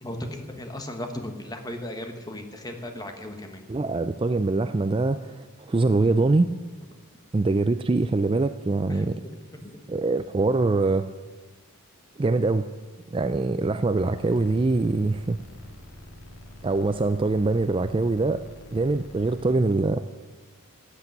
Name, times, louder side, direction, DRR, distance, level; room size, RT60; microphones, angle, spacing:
voice 1, 0.0-3.7 8.9-9.2 9.5-9.8, left 1 dB, 15° left, 5 dB, 1.3 m, -36 dB
voice 2, 3.7-6.5 7.3-9.2 9.9-11.1 12.2-12.6 13.1-15.4 16.6-18.4 18.7-20.0, right 3 dB, 25° right, 11 dB, 0.3 m, -23 dB
sound 1, 13.9-19.5, left 1 dB, 60° left, 2.2 m, -46 dB
13.5 x 8.4 x 9.0 m, 1.3 s
head